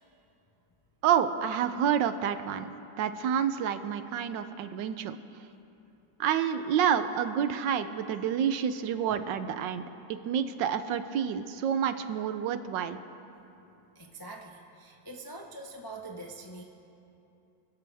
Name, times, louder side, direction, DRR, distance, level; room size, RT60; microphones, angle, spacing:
voice 1, 1.0-2.7 3.0-5.2 6.2-9.8 10.1-13.0, right 8 dB, 75° right, 11 dB, 1.2 m, -28 dB
voice 2, 13.9-16.6, right 2 dB, 30° left, 0 dB, 0.3 m, -44 dB
27.5 x 12.0 x 3.4 m, 2.8 s
omnidirectional pair, 2.1 m